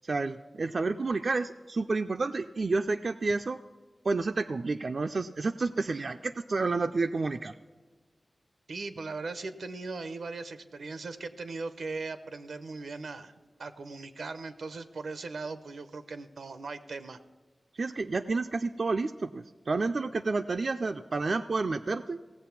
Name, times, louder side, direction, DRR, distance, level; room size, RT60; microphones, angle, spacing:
voice 1, 0.0-3.6 4.0-7.6 17.8-22.2, right 3 dB, 55° right, 8 dB, 0.3 m, -30 dB
voice 2, 8.7-13.3 13.6-17.2, right 3 dB, 90° right, 11 dB, 0.7 m, -39 dB
17.0 x 7.5 x 5.8 m, 1.4 s
wide cardioid pair, 100°, 0 cm